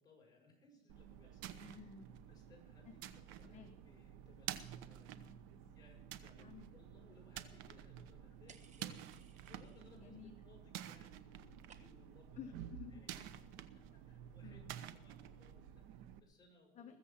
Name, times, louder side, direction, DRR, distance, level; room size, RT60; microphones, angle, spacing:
voice 1, 0.0-1.7 2.3-3.0 3.3-5.1 5.7-12.6 12.9-17.0, left 2 dB, 20° left, -1 dB, 6.7 m, -66 dB
sound 1, 0.9-16.2, right 11 dB, 90° right, 1.0 m, -51 dB
voice 2, 1.6-2.1 2.8-3.7 5.1-5.7 6.4-6.7 9.9-10.4 12.4-13.0 14.4-14.8 16.7-17.0, left 7 dB, 35° left, 6 dB, 1.0 m, -54 dB
sound 2, 8.5-10.1 10.4-10.9 11.2-12.2, right 6 dB, 35° right, 1.2 m, -65 dB
21.0 x 7.5 x 5.8 m, 1.0 s
cardioid pair, 125°, 20 cm